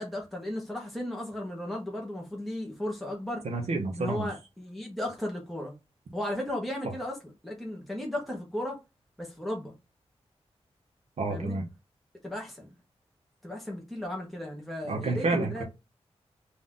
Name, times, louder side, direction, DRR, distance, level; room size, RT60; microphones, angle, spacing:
voice 1, 0.0-3.4 4.0-5.7 6.1-7.2 7.4-8.8 9.2-9.7 11.3-11.6 12.2-12.7 13.4-15.6, left 1 dB, ahead, 1.3 m, -35 dB
voice 2, 3.4-4.3 6.8-6.9 11.2-11.7 14.9-15.6, right 3 dB, 80° right, 1.2 m, -29 dB
4.1 x 2.8 x 3.7 m
wide cardioid pair, 155°, 11 cm